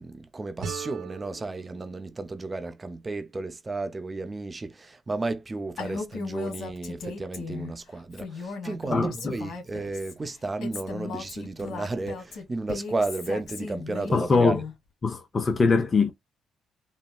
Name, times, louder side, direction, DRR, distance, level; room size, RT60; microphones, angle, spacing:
voice 1, 0.0-14.6, right 3 dB, 25° right, 0.5 m, -33 dB
sound 1, 0.6-3.5, right 6 dB, 80° right, 0.9 m, -41 dB
Female speech woman speaking, 5.8-7.7 8.1-10.1 10.6-14.7, left 4 dB, 75° left, 1.6 m, -36 dB
voice 2, 8.9-9.3 14.1-14.6 15.0-16.1, left 4 dB, 35° left, 0.6 m, -22 dB
4.0 x 2.0 x 2.2 m
cardioid pair, 90°, 0 cm